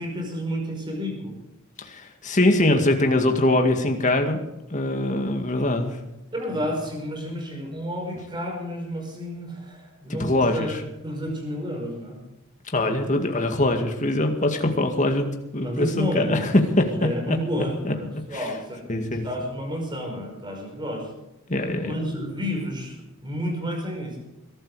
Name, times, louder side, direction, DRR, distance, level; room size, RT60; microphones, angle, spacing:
voice 1, 0.0-1.4 6.3-10.8 11.0-12.2 15.6-21.1 21.8-24.2, equal, 20° right, 2 dB, 5.3 m, -31 dB
voice 2, 1.8-4.4 4.7-6.0 10.2-10.7 12.7-16.5 16.8-16.9 17.3-17.4 17.8-17.9 18.3-18.5 18.9-19.3 21.5-21.9, left 1 dB, 35° left, 4 dB, 2.2 m, -23 dB
22.0 x 12.5 x 5.0 m, 0.94 s
head